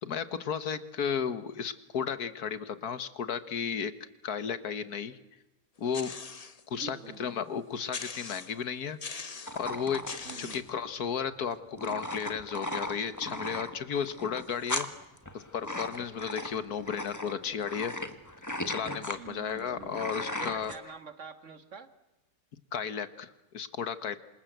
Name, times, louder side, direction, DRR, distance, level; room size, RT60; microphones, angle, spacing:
voice 1, 0.0-3.9 4.2-5.2 5.8-6.1 6.7-9.0 9.5-10.0 10.4-14.9 15.3-18.0 18.7-20.7 22.7-24.2, left 7 dB, 75° left, 12 dB, 1.8 m, -34 dB
sound 1, 5.9-6.6 7.1-7.2 7.9-8.6 9.0-9.6 10.1-10.7, left 4 dB, 30° left, 0.9 m, -41 dB
voice 2, 6.7-7.3 10.2-10.7 19.2-21.9, right 6 dB, 50° right, 9 dB, 1.9 m, -46 dB
sound 2, 9.5-20.8, left 1 dB, 10° left, 1.6 m, -37 dB
27.5 x 27.0 x 8.1 m, 1.0 s
omnidirectional pair, 1.6 m